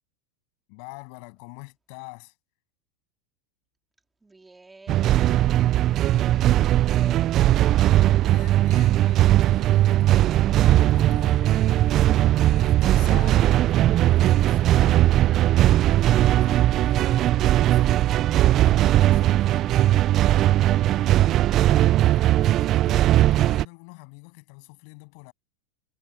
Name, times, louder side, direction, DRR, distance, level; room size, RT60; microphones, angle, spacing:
voice 1, 0.7-2.3 8.2-12.2 12.4-15.3 15.9-20.1 20.9-25.3, left 40 dB or more, 60° left, 7.9 m, -46 dB
voice 2, 4.2-7.4 15.1-15.5, right 3 dB, 10° right, 3.2 m, -47 dB
sound 1, 4.9-23.6, right 13 dB, 40° right, 0.3 m, -19 dB
supercardioid pair, 120°, 0 cm